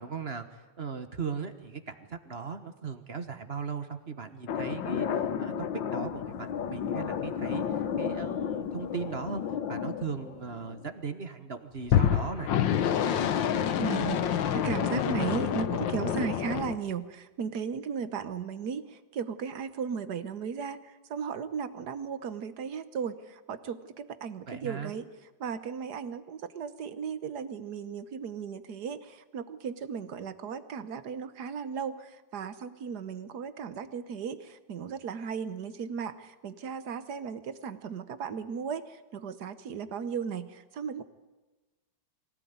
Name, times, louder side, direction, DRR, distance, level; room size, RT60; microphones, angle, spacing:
voice 1, 0.0-9.4 9.7-12.5 24.5-24.9, right 5 dB, 35° right, 9 dB, 1.4 m, -38 dB
sound 1, 4.5-10.8 11.8-16.8, left 9 dB, 80° left, 1.7 m, -29 dB
voice 2, 13.8-25.1 25.4-41.0, right 6 dB, 60° right, 13 dB, 1.6 m, -36 dB
23.5 x 17.5 x 9.5 m, 1.2 s
omnidirectional pair, 2.0 m